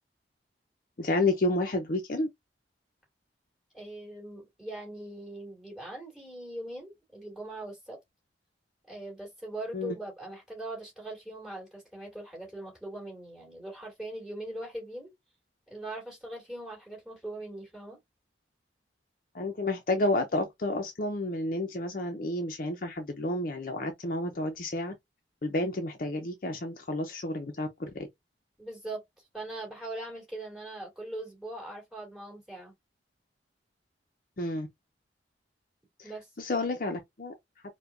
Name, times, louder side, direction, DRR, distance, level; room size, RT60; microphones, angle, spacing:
voice 1, 1.0-2.3 9.7-10.0 19.3-24.9 25.4-28.1 34.4-34.7 36.0-36.1 36.4-37.4, left 2 dB, 50° left, 0.6 m, -30 dB
voice 2, 3.7-8.0 8.9-15.1 15.7-18.0 28.6-29.0 29.3-32.7 36.0-36.3, right 1 dB, ahead, 2.6 m, -41 dB
4.7 x 2.2 x 2.5 m
head